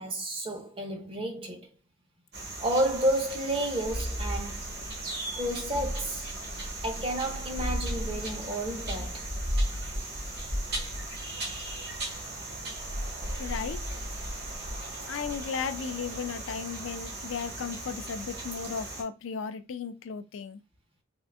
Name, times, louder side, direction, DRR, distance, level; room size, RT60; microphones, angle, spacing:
voice 1, 0.0-1.7 2.6-4.7 5.3-6.3 6.8-9.3, right 1 dB, 30° right, 0.6 m, -31 dB
sound 1, 2.3-19.0, right 1 dB, 55° right, 1.1 m, -35 dB
voice 2, 13.4-13.8 15.1-20.6, left 6 dB, 85° left, 0.4 m, -35 dB
3.6 x 2.5 x 2.4 m
head